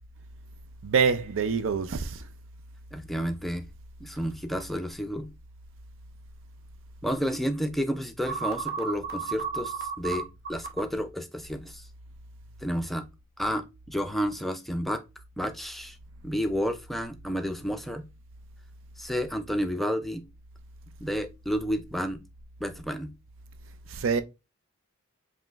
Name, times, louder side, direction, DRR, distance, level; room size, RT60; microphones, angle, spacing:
voice 1, 0.8-2.2 23.9-24.2, right 5 dB, 70° right, 0.5 m, -25 dB
voice 2, 2.9-3.6 4.0-5.3 7.0-11.8 12.6-13.0 13.4-15.0 15.4-16.0 16.2-18.0 19.0-20.2 21.0-22.2 22.6-23.1, equal, ahead, 0.4 m, -31 dB
sound 1, 8.3-10.8, right 6 dB, 50° right, 0.8 m, -32 dB
5.1 x 2.1 x 3.4 m
head